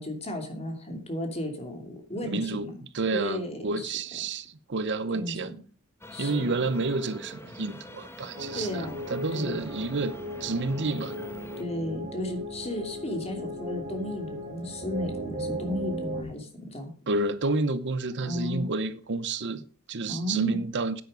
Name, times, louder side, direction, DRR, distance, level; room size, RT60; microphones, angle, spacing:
voice 1, 0.0-2.8 3.1-3.9 5.1-5.6 6.1-6.5 8.5-9.0 9.3-9.6 11.6-16.9 18.2-18.7 20.1-20.6, left 1 dB, 30° left, 2.8 m, -34 dB
voice 2, 2.3-5.5 6.2-10.1 10.4-11.3 17.1-21.0, right 3 dB, 55° right, 0.8 m, -30 dB
sound 1, 6.0-11.6, left 1 dB, 10° left, 1.0 m, -45 dB
sound 2, 8.3-16.2, equal, 30° right, 5.5 m, -37 dB
9.7 x 9.4 x 5.1 m
head